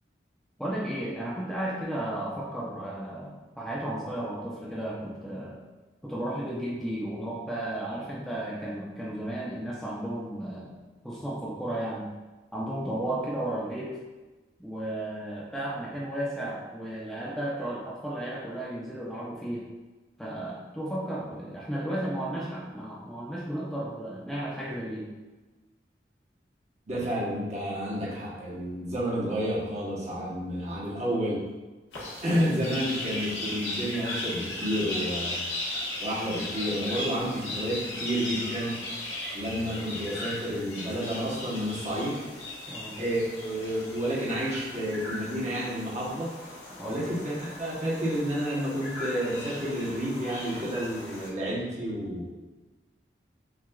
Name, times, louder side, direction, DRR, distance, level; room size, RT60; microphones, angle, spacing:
voice 1, 0.6-5.6 6.0-10.8 11.0-12.1 12.5-13.9 14.6-19.7 20.2-25.1 42.7-43.0 46.8-47.0, right 1 dB, ahead, -6 dB, 0.5 m, -34 dB
voice 2, 26.9-31.4 32.2-35.4 36.0-38.8 39.3-42.2 43.0-46.3 46.8-52.3, equal, 40° right, -6 dB, 1.0 m, -30 dB
sound 1, 31.9-51.3, left 1 dB, 75° left, 1.1 m, -37 dB
5.9 x 2.4 x 2.3 m, 1.2 s
head